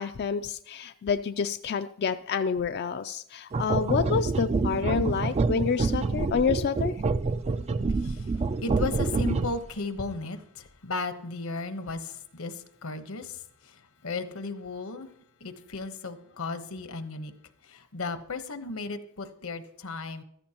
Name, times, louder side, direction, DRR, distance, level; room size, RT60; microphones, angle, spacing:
voice 1, 0.0-6.9, left 6 dB, 55° left, 9 dB, 0.4 m, -28 dB
sound 1, 3.5-9.7, right 3 dB, 30° right, 0.3 m, -27 dB
voice 2, 8.0-8.3 8.6-15.1 15.4-17.3 17.7-20.2, left 3 dB, 85° left, 9 dB, 1.1 m, -35 dB
14.5 x 13.5 x 2.9 m, 0.71 s
head